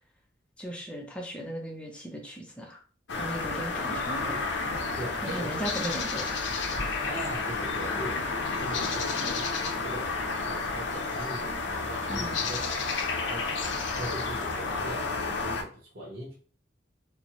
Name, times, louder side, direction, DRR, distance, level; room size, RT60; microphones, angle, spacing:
voice 1, 0.6-2.8 3.2-4.3 5.2-6.3 12.1-12.4, right 1 dB, 5° left, 0 dB, 0.5 m, -37 dB
sound 1, 3.1-15.6, left 4 dB, 75° left, 0.6 m, -31 dB
sound 2, 4.2-11.6, equal, 20° left, 0.9 m, -47 dB
voice 2, 4.9-5.6 7.0-8.2 8.6-13.4 13.9-16.3, right 1 dB, 60° right, -6 dB, 1.0 m, -40 dB
4.2 x 2.0 x 3.0 m, 0.40 s
head